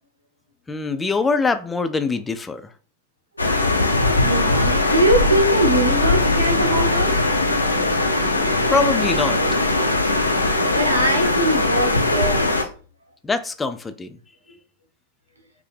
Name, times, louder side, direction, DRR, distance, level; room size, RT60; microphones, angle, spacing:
voice 1, 0.7-2.6 8.3-9.4 13.2-14.2, left 4 dB, 15° left, 0.3 m, -23 dB
sound 1, 3.4-12.6, left 2 dB, 85° left, 0.5 m, -20 dB
voice 2, 4.2-7.2 10.7-12.7, right 1 dB, 80° right, 0.9 m, -22 dB
5.4 x 2.0 x 3.2 m
figure-of-eight pair, 90°, 0 cm